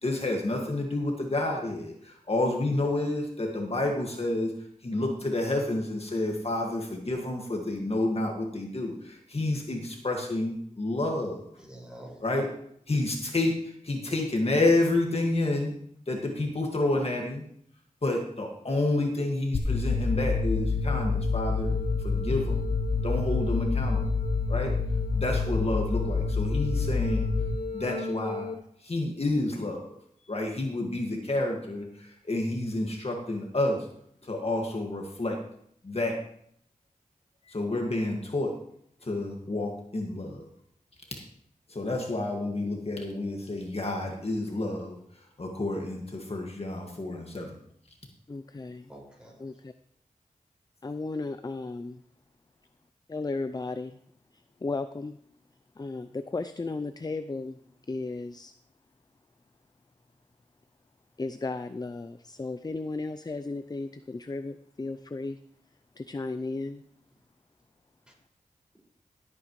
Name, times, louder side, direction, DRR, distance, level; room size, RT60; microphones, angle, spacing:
voice 1, 0.0-4.5 4.8-11.5 12.2-12.5 12.9-13.6 13.8-15.7 16.1-17.4 18.0-21.7 22.0-22.6 23.0-24.0 24.5-24.7 25.2-27.2 27.7-28.5 28.8-30.0 30.3-33.9 34.2-35.4 35.8-36.2 37.5-38.5 39.0-40.4 41.7-45.0 45.4-47.5, left 2 dB, 45° left, 1 dB, 1.9 m, -29 dB
voice 2, 11.6-12.5 48.9-49.6 68.1-68.2, right 1 dB, 5° right, -3 dB, 5.3 m, -48 dB
sound 1, 19.5-28.5, left 4 dB, 70° left, 1.1 m, -27 dB
voice 3, 48.3-48.9 49.4-49.7 50.8-52.0 53.1-54.0 54.6-55.2 55.8-57.6 57.9-58.5 61.2-65.4 66.0-66.8, left 3 dB, 30° left, 11 dB, 0.5 m, -35 dB
16.5 x 8.7 x 3.2 m, 0.67 s
wide cardioid pair, 65°, 14 cm